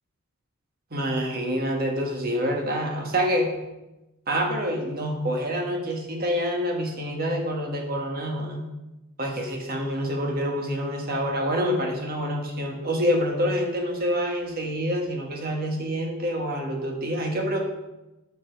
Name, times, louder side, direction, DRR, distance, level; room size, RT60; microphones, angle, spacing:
voice 1, 0.9-3.5 4.3-8.7 9.2-17.6, equal, 45° right, 1 dB, 1.5 m, -27 dB
7.0 x 6.0 x 5.1 m, 1.0 s
head